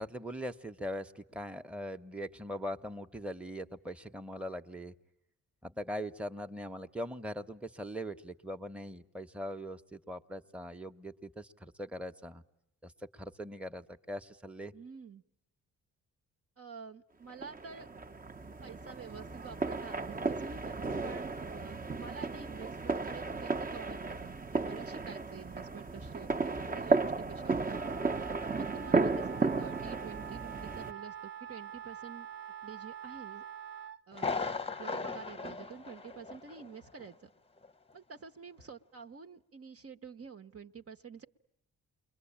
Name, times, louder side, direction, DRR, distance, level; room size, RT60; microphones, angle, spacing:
voice 1, 0.0-4.9 5.6-12.4 12.8-14.7, equal, 5° right, 6 dB, 1.1 m, -41 dB
voice 2, 14.7-15.2 16.6-17.9 18.6-27.8 28.5-32.3 32.6-33.4 34.1-34.3 34.8-37.3 37.9-41.3, right 6 dB, 45° right, 6 dB, 1.2 m, -48 dB
sound 1, 17.4-30.9, right 3 dB, 25° right, 1.1 m, -34 dB
Wind instrument woodwind instrument, 27.6-34.0, right 9 dB, 75° right, 1.3 m, -45 dB
Thunder, 34.1-36.7 37.0-37.1 37.6-37.7, left 4 dB, 15° left, 0.9 m, -37 dB
29.0 x 22.5 x 8.8 m, 0.83 s
cardioid pair, 65°, 34 cm